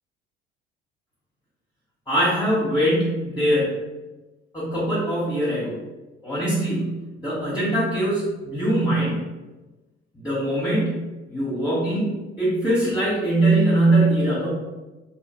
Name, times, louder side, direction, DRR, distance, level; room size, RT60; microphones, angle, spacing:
voice 1, 2.1-3.7 4.5-5.8 6.2-9.2 10.1-11.0 11.3-14.5, right 1 dB, 10° left, -10 dB, 1.1 m, -22 dB
2.9 x 2.4 x 2.3 m, 1.1 s
figure-of-eight pair, 55°, 32 cm